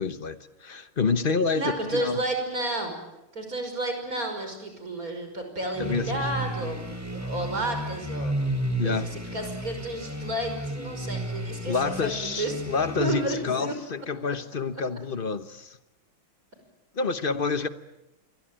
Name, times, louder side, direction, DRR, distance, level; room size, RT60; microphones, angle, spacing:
voice 1, 0.0-2.2 5.8-6.3 8.8-9.1 11.7-15.8 16.9-17.7, left 4 dB, 40° left, 0.8 m, -28 dB
voice 2, 1.5-3.0 3.3-8.4 8.8-12.1 12.4-12.5 13.0-13.7, right 1 dB, 40° right, 6.1 m, -31 dB
sound 1, 5.7-13.6, right 1 dB, 5° right, 3.2 m, -33 dB
27.5 x 23.0 x 9.0 m
omnidirectional pair, 2.3 m